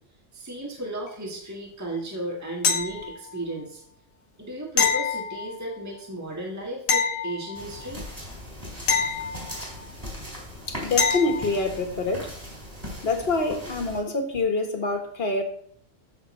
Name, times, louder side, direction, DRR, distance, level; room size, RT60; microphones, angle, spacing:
voice 1, 0.3-3.8 4.4-8.0, right 1 dB, 10° right, -2 dB, 1.5 m, -34 dB
sound 1, 2.6-3.4 4.8-5.8 6.9-7.9 8.9-9.9 11.0-11.6 14.3-14.4, left 6 dB, 80° left, 1.4 m, -26 dB
sound 2, 7.5-14.0, equal, 30° right, 4.2 m, -39 dB
voice 2, 10.6-12.3 13.0-15.4, left 3 dB, 50° left, 4 dB, 1.6 m, -26 dB
14.0 x 6.2 x 3.2 m, 0.63 s
omnidirectional pair, 1.4 m